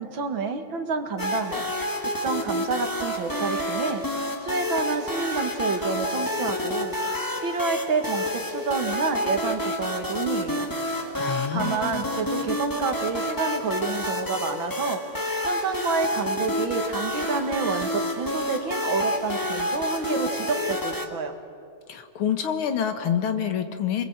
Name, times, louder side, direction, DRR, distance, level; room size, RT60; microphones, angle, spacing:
voice 1, 0.0-4.1 4.4-10.7 11.5-15.0 15.4-21.3, right 4 dB, 70° right, 6 dB, 2.5 m, -29 dB
sound 1, 1.2-21.1, left 1 dB, 10° left, 1.4 m, -29 dB
voice 2, 11.1-11.7 21.9-24.0, left 8 dB, 85° left, 7 dB, 2.3 m, -27 dB
28.5 x 21.0 x 8.0 m, 2.5 s
omnidirectional pair, 2.3 m